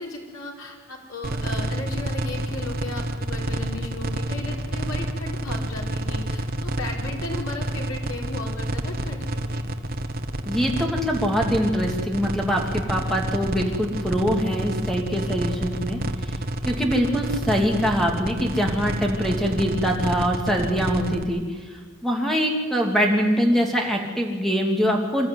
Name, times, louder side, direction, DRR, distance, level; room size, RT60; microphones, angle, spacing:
voice 1, 0.0-9.7, left 2 dB, 80° left, 0 dB, 4.4 m, -36 dB
sound 1, 1.2-21.2, right 1 dB, 45° right, 1.2 m, -28 dB
voice 2, 10.4-16.4 16.6-25.3, equal, ahead, 1 dB, 2.8 m, -24 dB
26.5 x 13.0 x 9.5 m, 1.5 s
head